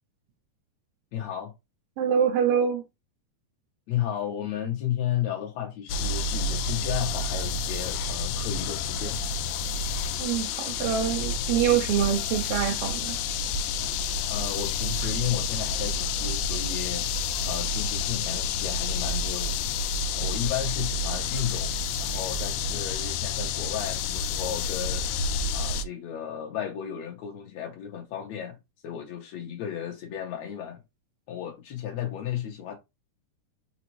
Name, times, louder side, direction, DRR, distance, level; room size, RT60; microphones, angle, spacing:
voice 1, 1.1-1.5 3.9-9.2 14.3-17.1 17.5-19.6 20.1-21.7 22.0-25.1 25.5-28.6 28.8-30.8 31.3-32.8, left 10 dB, 70° left, 1.9 m, -33 dB
voice 2, 2.0-2.8 10.2-13.2, right 8 dB, 90° right, 1.3 m, -25 dB
sound 1, 5.9-25.8, left 4 dB, 85° left, 2.1 m, -29 dB
5.2 x 3.4 x 3.0 m
omnidirectional pair, 3.4 m